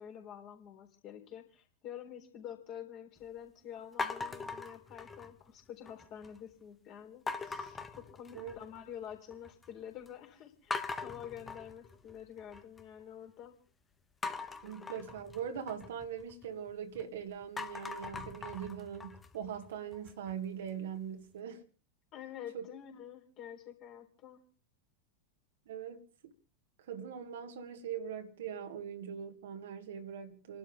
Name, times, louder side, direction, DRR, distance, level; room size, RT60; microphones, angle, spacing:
voice 1, 0.0-13.6 22.1-24.4, left 9 dB, 40° left, 3.9 m, -48 dB
sound 1, 4.0-5.5 5.9-6.4 7.3-8.8 9.1-9.7 10.1-10.2 10.7-12.8 14.2-17.0 17.4-20.3, left 4 dB, 15° left, 1.2 m, -41 dB
voice 2, 14.6-21.6 22.5-22.7 25.7-26.3 26.9-30.6, right 8 dB, 60° right, 2.0 m, -41 dB
29.5 x 12.0 x 3.5 m
figure-of-eight pair, 90°, 0 cm